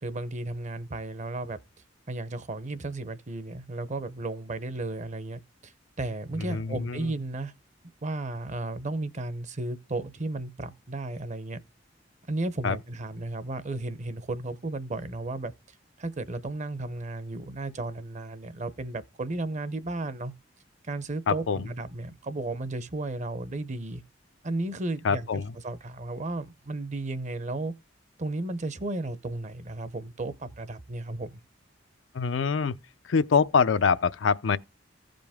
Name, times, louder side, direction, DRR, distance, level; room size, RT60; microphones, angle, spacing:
voice 1, 0.0-1.6 2.1-7.5 8.0-11.6 12.3-20.3 20.8-24.0 24.4-27.7 28.2-31.4, right 2 dB, 40° right, 0.7 m, -34 dB
voice 2, 6.5-7.1 12.6-12.8 21.3-21.6 25.0-25.5 32.1-32.7 33.0-34.6, left 5 dB, 75° left, 0.5 m, -24 dB
15.0 x 5.2 x 3.6 m
head